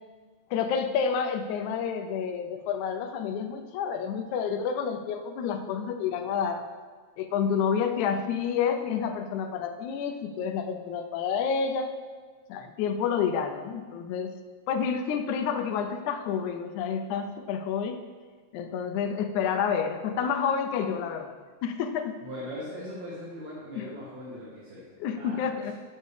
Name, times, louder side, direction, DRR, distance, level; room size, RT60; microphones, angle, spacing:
voice 1, 0.5-6.6 7.2-11.9 12.5-14.3 14.7-18.0 18.5-21.4 21.6-22.2 23.8-23.9 25.0-25.7, left 7 dB, 90° left, 7 dB, 2.1 m, -29 dB
voice 2, 22.2-24.9 25.2-25.7, equal, 65° right, -9 dB, 2.8 m, -40 dB
9.6 x 6.6 x 3.3 m, 1.5 s
omnidirectional pair, 3.3 m